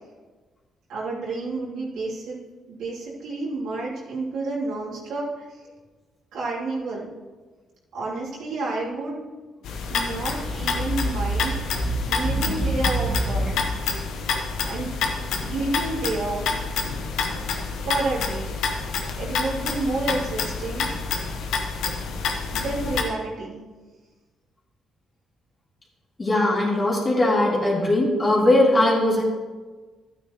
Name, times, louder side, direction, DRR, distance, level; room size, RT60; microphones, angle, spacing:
voice 1, 0.9-2.4 2.7-5.3 6.3-7.1 7.9-9.3 9.9-11.8 12.1-13.7 14.6-15.0 15.4-16.5 17.9-18.5 19.2-20.9 22.5-23.6, right 3 dB, 80° right, -6 dB, 3.1 m, -30 dB
sound 1, 9.6-23.0, left 5 dB, 85° left, 1.1 m, -28 dB
sound 2, 10.3-13.8, right 1 dB, 20° right, 2.0 m, -27 dB
voice 2, 26.2-29.2, left 1 dB, 30° left, -4 dB, 3.2 m, -20 dB
13.0 x 9.1 x 3.1 m, 1.3 s
cardioid pair, 90°, 0 cm